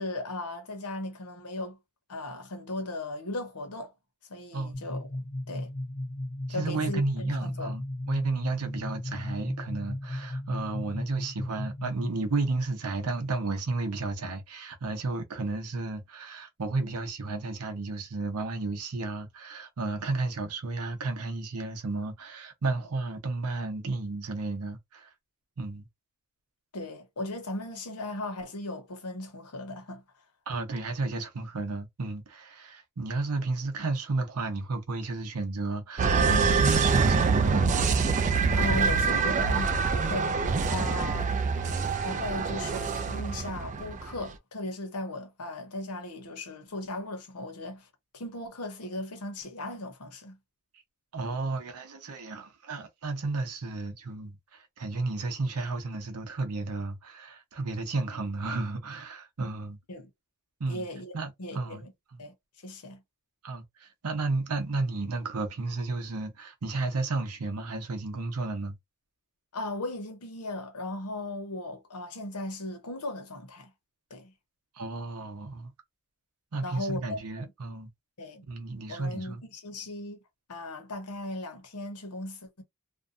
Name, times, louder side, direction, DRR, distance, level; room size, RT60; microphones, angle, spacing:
voice 1, 0.0-1.8 2.1-3.9 4.3-5.1 5.5-5.7 6.5-7.7 26.7-30.0 38.4-40.4 40.7-47.9 48.1-50.4 59.9-60.1 60.7-61.9 62.2-62.3 62.6-63.0 69.5-73.7 74.1-74.3 76.6-77.5 78.2-78.5 78.9-80.2 80.5-82.6, left 2 dB, 85° left, 0.9 m, -37 dB
sound 1, 4.7-12.3, left 1 dB, 50° left, 0.7 m, -36 dB
voice 2, 6.5-25.1 25.6-25.9 30.5-37.6 41.1-41.5 51.1-59.8 60.6-60.8 61.1-61.9 62.1-62.2 63.4-68.7 74.8-75.7 76.5-77.9 78.5-79.4, right 3 dB, 80° right, 0.8 m, -32 dB
sound 2, 36.0-44.2, right 5 dB, 35° right, 0.4 m, -25 dB
2.6 x 2.2 x 2.5 m
head